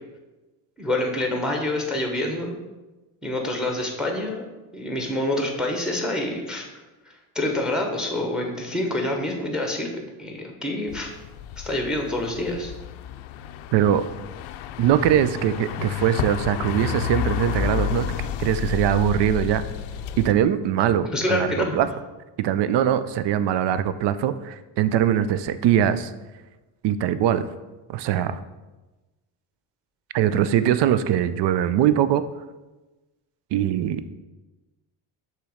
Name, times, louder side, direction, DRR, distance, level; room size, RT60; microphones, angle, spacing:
voice 1, 0.8-2.5 3.2-4.5 4.7-6.7 7.0-9.9 10.2-11.1 11.6-12.7 21.1-21.9, left 1 dB, ahead, 2 dB, 0.9 m, -27 dB
sound 1, 10.9-20.3, left 10 dB, 80° left, 0.6 m, -31 dB
voice 2, 13.7-14.0 14.8-19.6 20.2-21.9 22.4-26.1 26.8-27.5 27.9-28.4 30.1-32.2 33.5-34.1, right 10 dB, 60° right, 13 dB, 0.5 m, -22 dB
6.6 x 3.1 x 4.9 m, 1.1 s
cardioid pair, 105°, 49 cm